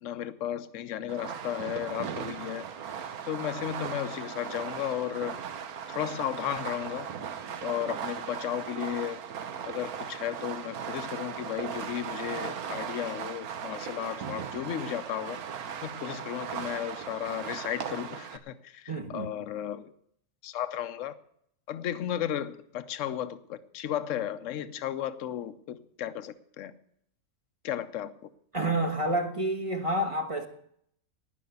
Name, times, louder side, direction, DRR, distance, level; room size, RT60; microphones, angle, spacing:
voice 1, 0.0-2.7 3.2-5.4 5.9-7.1 7.6-9.2 9.7-15.4 15.8-19.9 20.4-21.1 21.7-26.7 27.6-28.1, left 11 dB, 65° left, 13 dB, 1.1 m, -34 dB
Fireworks, 1.1-18.4, right 7 dB, 90° right, 1.4 m, -38 dB
voice 2, 18.9-19.3 28.5-30.5, right 1 dB, 25° right, 3 dB, 1.2 m, -29 dB
18.5 x 6.2 x 8.1 m, 0.69 s
omnidirectional pair, 1.5 m